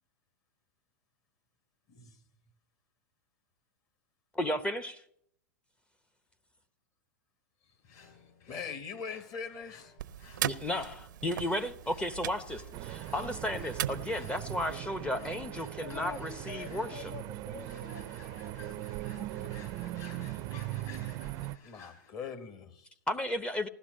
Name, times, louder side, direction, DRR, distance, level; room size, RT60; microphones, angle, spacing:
voice 1, 4.3-5.0 10.4-17.1 23.1-23.7, left 1 dB, 10° left, 12 dB, 0.7 m, -34 dB
sound 1, 7.8-22.1, left 6 dB, 50° left, 7.1 m, -56 dB
voice 2, 8.4-9.9 21.6-22.9, left 6 dB, 35° left, 10 dB, 1.5 m, -41 dB
sound 2, 10.0-14.8, right 11 dB, 75° right, 0.6 m, -39 dB
sound 3, 12.7-21.6, right 15 dB, 40° right, 0.5 m, -40 dB
voice 3, 15.8-20.1, left 5 dB, 75° left, 6 dB, 2.1 m, -48 dB
16.0 x 12.0 x 6.4 m, 0.70 s
hypercardioid pair, 130°, 10 cm